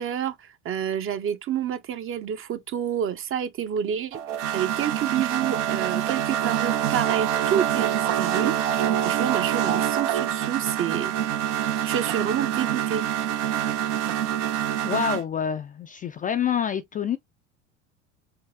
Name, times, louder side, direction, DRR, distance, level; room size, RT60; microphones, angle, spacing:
voice 1, 0.0-4.2 4.5-8.6 9.0-11.1 11.8-13.0, right 9 dB, 35° right, 0.7 m, -28 dB
sound 1, 4.1-15.2, right 10 dB, 75° right, 0.8 m, -25 dB
voice 2, 14.8-17.2, left 8 dB, 25° left, 0.3 m, -27 dB
4.7 x 2.0 x 3.5 m
hypercardioid pair, 80°, 36 cm